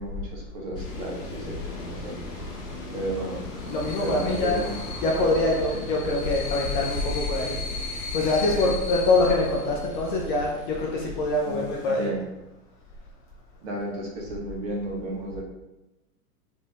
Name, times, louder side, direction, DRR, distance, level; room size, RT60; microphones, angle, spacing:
voice 1, 0.0-2.2 2.9-3.4 3.9-4.8 5.7-5.8 8.5-8.8 11.4-12.2 13.6-15.4, right 1 dB, 45° right, -1 dB, 1.0 m, -33 dB
sound 1, 0.7-12.1, left 4 dB, 85° left, 0.9 m, -38 dB
sound 2, 0.8-8.7, equal, 5° right, 1.2 m, -40 dB
voice 2, 3.7-4.6 5.0-7.5 8.1-12.1, left 2 dB, 35° left, -2 dB, 0.4 m, -24 dB
2.7 x 2.6 x 3.3 m, 1.0 s
hypercardioid pair, 115°, 47 cm